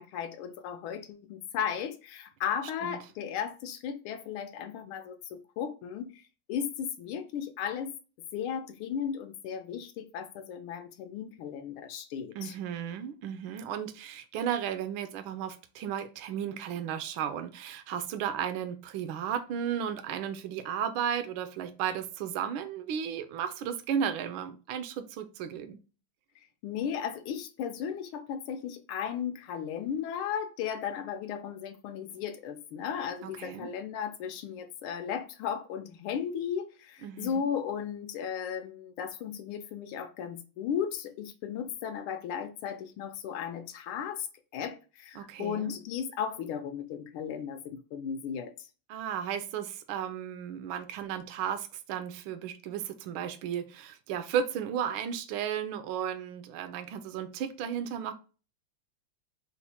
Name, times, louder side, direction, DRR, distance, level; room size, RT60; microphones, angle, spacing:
voice 1, 0.0-6.2 6.5-7.9 8.3-12.5 26.6-44.3 44.5-48.7, left 8 dB, 80° left, 1.4 m, -35 dB
voice 2, 12.3-25.8 33.2-33.7 37.0-37.5 45.2-45.7 48.9-58.1, right 8 dB, 75° right, 1.3 m, -34 dB
4.3 x 2.1 x 4.1 m
omnidirectional pair, 2.4 m